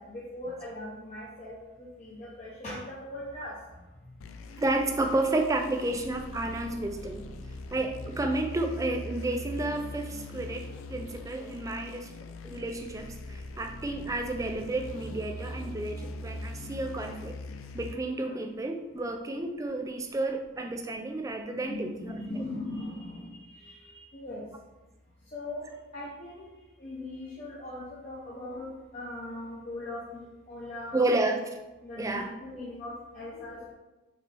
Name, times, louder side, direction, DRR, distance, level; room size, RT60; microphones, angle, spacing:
voice 1, 0.0-3.6 16.0-16.1 21.7-24.4 25.3-26.4 26.8-31.0 31.8-33.7, left 1 dB, 35° left, -6 dB, 0.7 m, -40 dB
sound 1, 4.2-17.9, left 1 dB, 75° left, 0.4 m, -41 dB
voice 2, 4.6-7.3 7.7-12.1 12.4-17.3 17.7-21.9 30.9-31.6 32.0-32.3, right 2 dB, 15° right, 4 dB, 0.3 m, -31 dB
5.0 x 3.2 x 3.3 m, 1.1 s
head